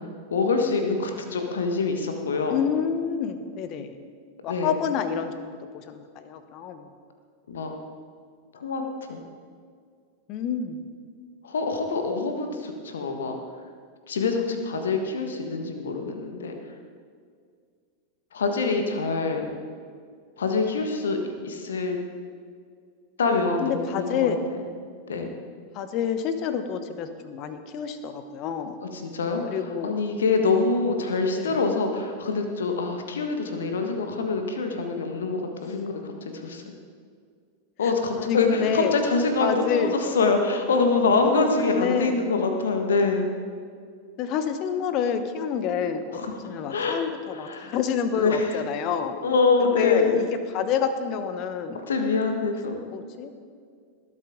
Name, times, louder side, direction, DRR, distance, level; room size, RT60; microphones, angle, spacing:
voice 1, 0.3-2.6 4.5-4.7 7.5-7.7 8.5-8.8 9.1-9.2 11.4-13.4 14.1-16.5 18.3-19.5 20.4-21.2 21.4-22.0 23.2-24.3 25.1-25.3 28.8-29.6 29.8-36.7 37.8-43.3 46.2-46.3 46.7-47.0 47.3-47.7 48.2-48.6 49.2-50.2 51.9-52.8, left 4 dB, 65° left, 5 dB, 1.5 m, -25 dB
voice 2, 2.4-3.9 4.4-6.9 10.3-10.9 23.6-24.4 25.7-28.8 29.5-29.9 31.4-31.6 37.8-37.9 38.2-39.0 39.4-39.9 41.4-42.1 44.2-49.2 49.6-51.8 52.9-53.3, left 7 dB, 40° left, 10 dB, 1.0 m, -28 dB
19.5 x 8.6 x 3.8 m, 2.1 s
figure-of-eight pair, 90°, 0 cm